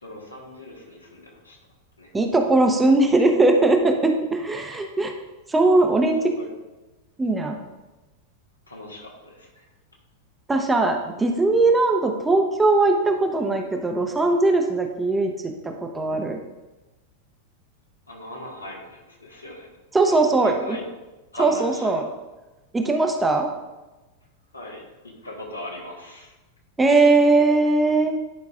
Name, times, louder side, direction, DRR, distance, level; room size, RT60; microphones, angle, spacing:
voice 1, 0.0-1.6 2.0-2.1 6.4-6.5 8.7-9.6 18.1-19.7 20.0-20.8 21.3-22.1 24.5-26.3, left 1 dB, 80° left, -2 dB, 1.6 m, -39 dB
voice 2, 2.1-5.1 5.5-6.3 7.2-7.6 10.5-16.4 19.9-20.8 21.4-22.1 22.7-23.5 26.8-28.2, right 2 dB, 10° right, 4 dB, 0.7 m, -20 dB
10.5 x 5.1 x 2.5 m, 1.1 s
figure-of-eight pair, 90°, 0 cm